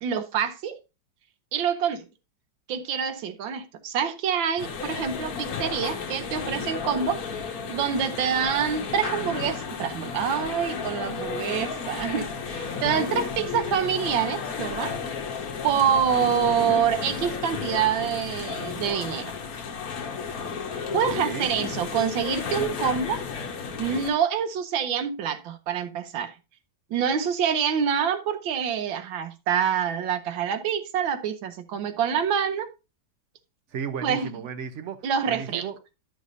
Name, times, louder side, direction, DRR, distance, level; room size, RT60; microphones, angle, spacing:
voice 1, 0.0-0.8 1.5-2.1 2.7-7.2 7.7-14.9 15.6-19.3 20.9-23.2 23.8-26.4 26.9-32.7 34.0-34.3 35.0-35.6, right 8 dB, 90° right, 1.6 m, -26 dB
sound 1, 4.6-24.1, left 5 dB, 55° left, 1.2 m, -33 dB
voice 2, 20.9-21.5 33.7-35.8, right 7 dB, 60° right, 0.7 m, -35 dB
11.0 x 6.3 x 2.6 m
omnidirectional pair, 2.1 m